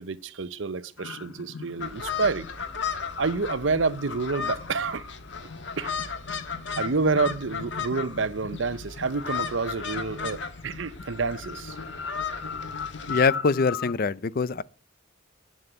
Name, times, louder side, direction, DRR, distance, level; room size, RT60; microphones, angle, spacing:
voice 1, 0.0-2.5 3.2-5.1 5.8-6.0 6.8-11.8, right 4 dB, 75° right, 0.7 m, -28 dB
sound 1, 1.0-13.9, left 5 dB, 85° left, 1.1 m, -40 dB
sound 2, 1.8-13.3, left 6 dB, 65° left, 1.4 m, -35 dB
voice 2, 13.1-14.6, left 4 dB, 50° left, 0.5 m, -23 dB
11.0 x 7.6 x 8.0 m
head